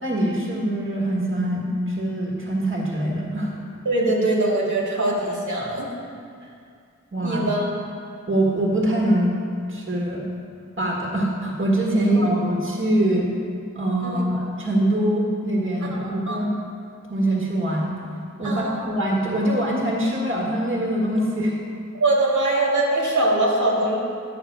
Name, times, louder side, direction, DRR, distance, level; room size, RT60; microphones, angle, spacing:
voice 1, 0.0-3.6 7.1-7.5 8.3-9.4 9.7-10.2 10.8-13.3 13.7-16.5 17.1-17.9 18.4-21.5, right 1 dB, 40° right, -3 dB, 1.5 m, -23 dB
voice 2, 3.9-5.9 7.2-7.7 13.0-13.1 14.0-14.2 15.8-16.4 18.4-18.8 21.9-24.0, right 2 dB, 80° right, -4 dB, 1.9 m, -22 dB
9.5 x 6.3 x 4.6 m, 2.4 s
wide cardioid pair, 55°, 30 cm